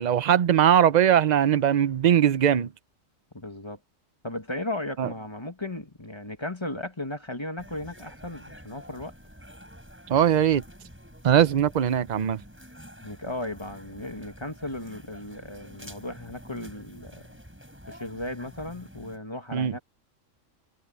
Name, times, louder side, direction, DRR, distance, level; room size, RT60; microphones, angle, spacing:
voice 1, 0.0-2.7 5.0-5.1 10.1-10.6 11.2-12.4 19.5-19.7, right 9 dB, 45° right, 0.6 m, -20 dB
voice 2, 3.3-3.8 4.2-9.1 13.0-17.2 17.9-19.8, left 1 dB, 20° left, 1.8 m, -36 dB
sound 1, 7.6-19.2, equal, 10° right, 8.0 m, -48 dB
omnidirectional pair, 1.4 m